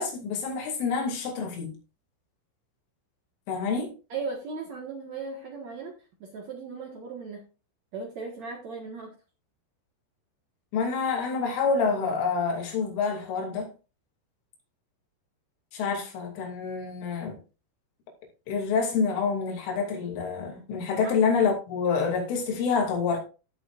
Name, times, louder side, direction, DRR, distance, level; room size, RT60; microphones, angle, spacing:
voice 1, 0.0-1.7 3.5-3.9 10.7-13.7 15.7-17.4 18.5-23.2, left 5 dB, 75° left, 5.2 m, -27 dB
voice 2, 4.1-5.9 6.2-7.4 7.9-9.1 21.0-21.1, right 4 dB, 60° right, 1.8 m, -37 dB
15.5 x 7.1 x 2.5 m
omnidirectional pair, 5.7 m